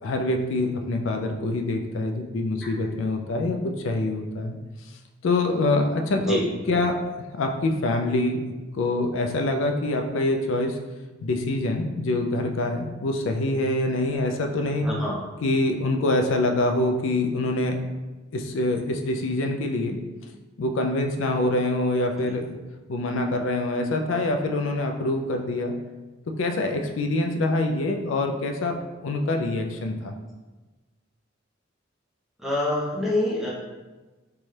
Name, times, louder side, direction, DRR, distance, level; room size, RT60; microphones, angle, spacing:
voice 1, 0.0-3.6 3.8-4.6 5.2-6.4 6.7-6.9 7.3-8.4 8.7-10.8 11.2-14.9 15.4-17.8 18.3-20.0 20.6-22.6 22.9-25.7 26.4-28.8 29.0-30.1, left 2 dB, 85° left, 4 dB, 0.4 m, -25 dB
voice 2, 6.2-6.5 14.8-15.1 22.2-22.3 32.4-33.5, left 1 dB, ahead, -6 dB, 0.8 m, -26 dB
4.0 x 2.3 x 3.2 m, 1.2 s
head